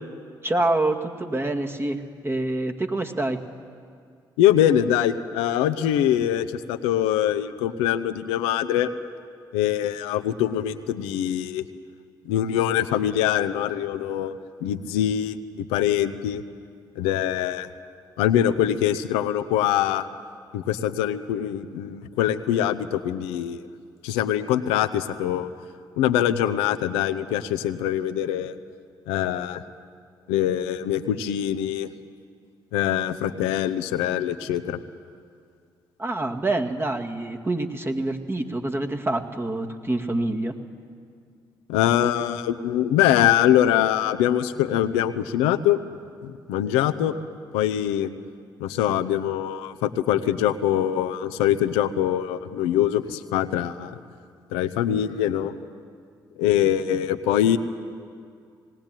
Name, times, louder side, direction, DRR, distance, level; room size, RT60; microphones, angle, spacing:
voice 1, 0.4-3.4 36.0-40.5, right 2 dB, 25° right, 4 dB, 2.0 m, -26 dB
voice 2, 4.4-8.9 9.5-11.6 12.3-14.3 14.6-16.4 17.0-17.7 18.2-20.0 20.5-23.7 24.0-25.5 26.0-28.6 29.1-29.6 30.3-31.9 32.7-34.8 41.7-45.8 46.2-47.1 47.5-48.1 48.6-54.0 54.5-55.5 56.4-57.6, left 11 dB, 85° left, 9 dB, 0.8 m, -23 dB
19.5 x 17.5 x 9.1 m, 2.2 s
hypercardioid pair, 50°, 10 cm